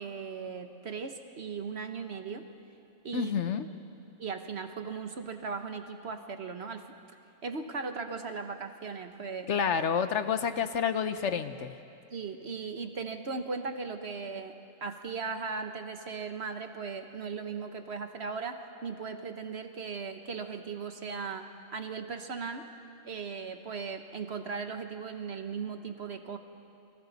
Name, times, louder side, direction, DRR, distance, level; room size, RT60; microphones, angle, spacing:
voice 1, 0.0-2.5 3.0-3.3 4.2-6.9 7.4-9.5 12.1-22.7 23.0-26.4, right 5 dB, 50° right, 7 dB, 1.3 m, -38 dB
voice 2, 3.1-3.7 9.5-11.7, left 7 dB, 65° left, 10 dB, 1.0 m, -29 dB
30.0 x 24.0 x 4.1 m, 2.6 s
omnidirectional pair, 1.4 m